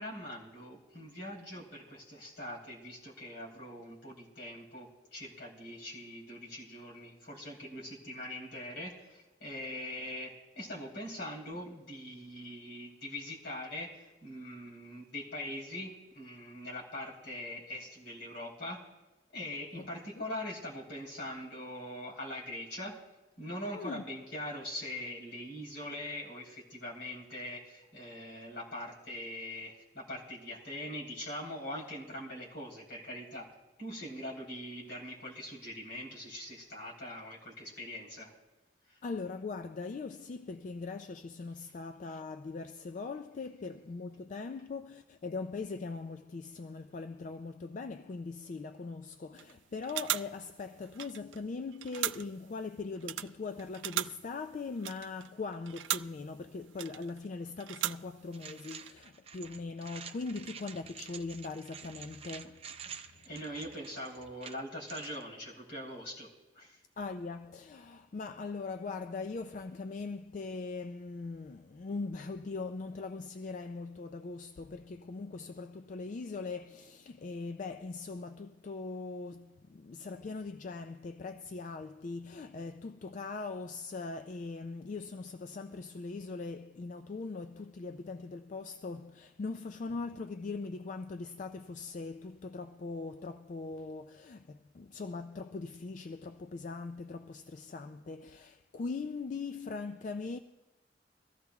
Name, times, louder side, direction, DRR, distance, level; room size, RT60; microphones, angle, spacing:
voice 1, 0.0-18.9 19.3-23.0 23.4-33.5 33.8-38.3 38.9-39.0 63.2-66.3 66.5-66.8, left 1 dB, 75° left, 3.6 m, -42 dB
voice 2, 23.7-24.0 39.0-63.3 67.0-100.4, left 4 dB, 40° left, 0.3 m, -41 dB
sound 1, 49.4-49.6 49.8-51.5 51.7-52.5 53.0-56.3 56.7-57.3 57.6-58.4 58.6-58.9, right 13 dB, 80° right, 0.3 m, -38 dB
sound 2, 58.3-65.2, right 7 dB, 30° right, 0.6 m, -48 dB
23.0 x 14.5 x 2.3 m
head